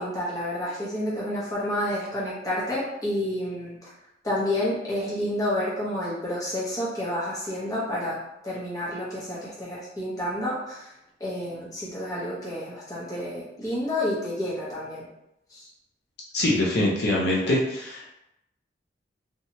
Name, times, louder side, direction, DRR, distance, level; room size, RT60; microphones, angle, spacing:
voice 1, 0.0-3.9 4.2-8.2 8.4-10.9 11.2-15.1 15.5-15.7, left 1 dB, 20° left, -7 dB, 0.8 m, -29 dB
voice 2, 16.3-18.0, left 1 dB, 60° left, -4 dB, 0.5 m, -23 dB
2.8 x 2.2 x 2.8 m, 0.84 s
head